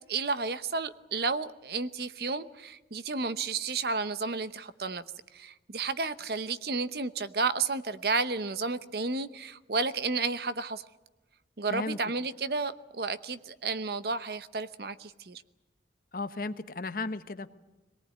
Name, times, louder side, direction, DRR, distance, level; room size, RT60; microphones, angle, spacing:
voice 1, 0.1-5.0 5.3-10.8 11.6-15.4, right 4 dB, 60° right, 0.9 m, -32 dB
voice 2, 16.1-17.5, left 3 dB, 50° left, 1.0 m, -34 dB
23.0 x 18.5 x 9.5 m
head